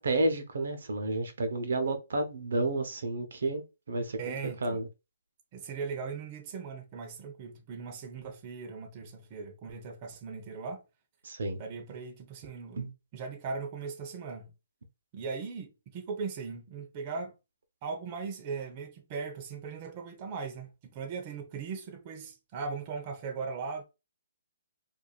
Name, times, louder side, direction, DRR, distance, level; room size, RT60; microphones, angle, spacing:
voice 1, 0.0-4.9 11.2-11.6 12.8-12.9, right 2 dB, 75° right, 0.9 m, -31 dB
voice 2, 4.2-4.8 5.5-10.8 11.6-12.8 13.1-14.5 15.1-17.3 17.8-23.8, right 5 dB, 30° right, 0.9 m, -39 dB
4.7 x 2.7 x 2.4 m
hypercardioid pair, 155°, 0 cm